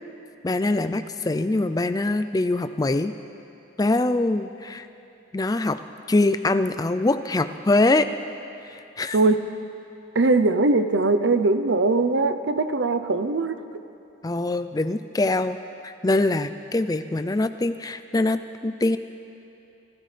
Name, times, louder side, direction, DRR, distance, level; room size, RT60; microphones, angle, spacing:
voice 1, 0.4-3.1 3.8-4.9 5.3-5.8 6.1-8.1 8.7-9.2 14.2-15.6 15.8-19.0, left 2 dB, 20° left, 10 dB, 0.4 m, -23 dB
voice 2, 9.1-9.5 10.1-13.6, right 3 dB, 65° right, 9 dB, 0.6 m, -21 dB
25.5 x 13.0 x 3.3 m, 2.8 s
head